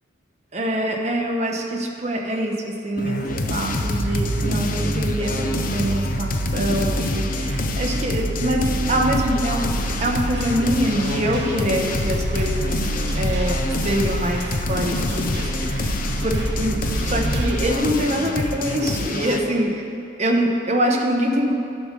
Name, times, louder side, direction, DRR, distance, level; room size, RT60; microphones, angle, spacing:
voice 1, 0.5-12.8 13.1-15.9 16.2-19.8 20.2-21.5, right 1 dB, 40° right, 1 dB, 1.0 m, -24 dB
sound 1, 3.0-19.5, left 2 dB, 50° left, 0.6 m, -27 dB
sound 2, 3.3-17.8, right 2 dB, 85° right, 0.6 m, -28 dB
sound 3, 9.8-17.8, right 1 dB, 65° right, 2.2 m, -37 dB
11.0 x 5.3 x 6.5 m, 2.6 s
head